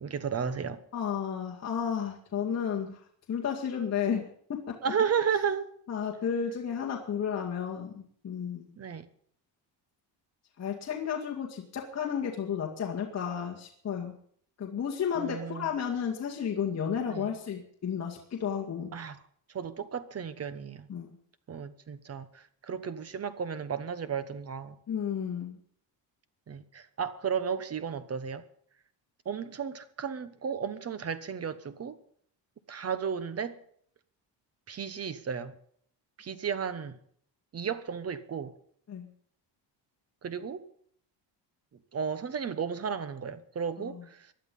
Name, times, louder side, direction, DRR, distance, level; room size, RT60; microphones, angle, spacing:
voice 1, 0.0-0.8 4.8-5.7 8.8-9.0 15.1-15.7 17.1-17.3 18.9-19.2 19.5-20.9 21.5-22.3 22.7-24.8 26.5-28.4 29.2-32.0 32.7-33.6 34.7-35.5 36.2-36.9 37.5-38.5 40.2-40.6 41.9-44.2, right 7 dB, 35° right, 1.1 m, -33 dB
voice 2, 0.9-3.0 3.3-4.2 4.5-4.8 5.9-7.9 8.2-8.7 10.6-14.1 14.6-18.9 20.9-21.1 24.9-25.6 38.9-39.1 43.8-44.0, left 7 dB, 35° left, 2.0 m, -32 dB
19.0 x 12.0 x 5.4 m
cardioid pair, 150°, 44 cm